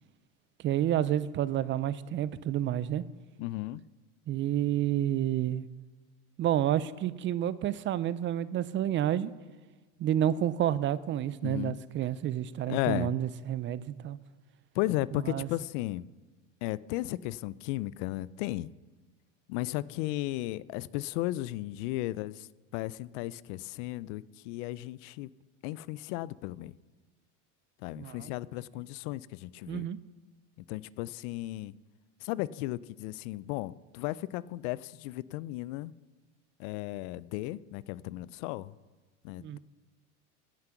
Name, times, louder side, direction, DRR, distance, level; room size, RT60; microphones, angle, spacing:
voice 1, 0.6-3.0 4.3-5.6 6.4-9.3 10.0-14.2 15.1-15.5 28.0-28.3 29.7-30.0 39.4-39.6, right 11 dB, 35° right, 18 dB, 0.4 m, -29 dB
voice 2, 3.4-3.8 11.4-11.8 12.6-13.1 14.7-16.1 16.6-18.7 19.5-25.3 25.6-26.7 27.8-29.9 30.7-31.7 32.2-35.9 36.6-38.7 39.2-39.6, left 17 dB, 75° left, 20 dB, 0.5 m, -35 dB
16.0 x 5.9 x 5.9 m, 1.3 s
supercardioid pair, 105°, 36 cm